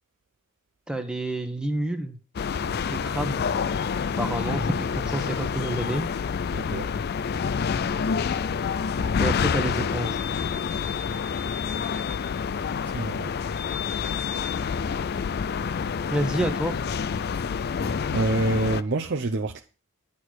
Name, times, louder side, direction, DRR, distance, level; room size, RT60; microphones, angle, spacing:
voice 1, 0.9-2.2 2.9-3.4 4.2-6.1 9.2-10.2 16.1-16.7, right 1 dB, 5° right, 1.1 m, -28 dB
sound 1, 2.4-18.8, left 6 dB, 50° left, 0.4 m, -28 dB
voice 2, 4.3-4.6 6.5-6.9 12.8-13.3 18.1-19.6, right 2 dB, 55° right, 0.7 m, -27 dB
11.5 x 4.2 x 6.3 m
head